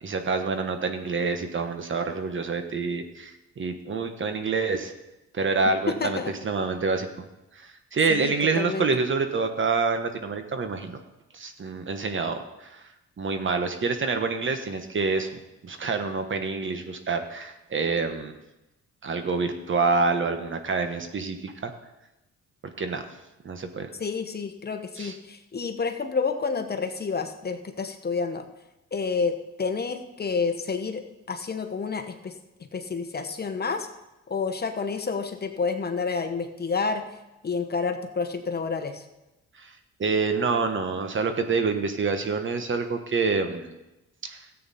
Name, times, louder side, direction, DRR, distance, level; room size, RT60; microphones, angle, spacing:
voice 1, 0.0-4.9 5.3-7.1 7.6-11.0 11.3-12.8 13.2-15.3 15.6-18.3 19.0-21.7 22.8-23.0 23.4-23.9 25.0-25.1 39.6-39.7 40.0-43.7 44.2-44.4, right 4 dB, 40° right, 7 dB, 1.3 m, -27 dB
voice 2, 5.9-6.3 8.1-8.9 24.0-28.4 28.9-31.0 31.3-32.3 32.7-33.9 34.3-37.1 37.4-39.0, left 5 dB, 35° left, 6 dB, 1.1 m, -29 dB
13.5 x 8.4 x 4.2 m, 0.97 s
cardioid pair, 90°, 30 cm